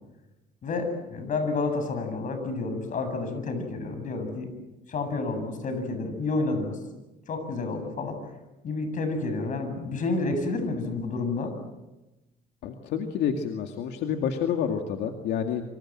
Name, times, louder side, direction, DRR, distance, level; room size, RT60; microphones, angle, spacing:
voice 1, 0.6-4.5 4.9-6.8 7.3-8.2 8.6-11.5, left 3 dB, 50° left, 8 dB, 7.9 m, -30 dB
voice 2, 12.6-15.6, left 8 dB, 80° left, 4 dB, 2.3 m, -28 dB
27.0 x 26.0 x 7.6 m, 1.0 s
cardioid pair, 110°, 17 cm